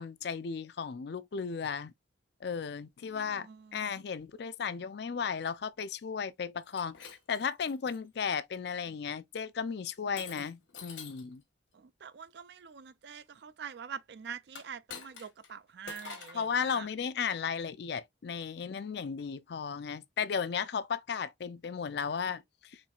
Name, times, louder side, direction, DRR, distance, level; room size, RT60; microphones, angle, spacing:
voice 1, 0.0-1.9 2.4-11.4 16.3-22.8, left 6 dB, 60° left, 0.4 m, -35 dB
voice 2, 3.0-4.0 11.7-16.9, right 7 dB, 60° right, 0.4 m, -46 dB
Shatter, 6.6-8.0 8.6-9.0 10.2-11.3 14.5-15.5 15.9-16.5, left 5 dB, 85° left, 1.2 m, -47 dB
4.4 x 3.2 x 2.3 m
head